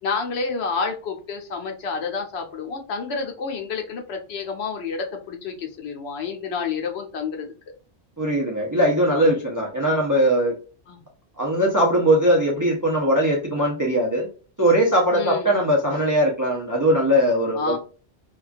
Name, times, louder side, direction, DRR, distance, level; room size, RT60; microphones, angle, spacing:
voice 1, 0.0-7.5 9.9-10.0 10.9-11.0 15.1-15.6 17.5-17.8, left 5 dB, 75° left, 3 dB, 0.9 m, -29 dB
voice 2, 8.2-10.5 11.4-14.3 14.6-17.8, equal, 30° right, -1 dB, 0.4 m, -20 dB
2.4 x 2.2 x 2.5 m, 0.36 s
omnidirectional pair, 1.1 m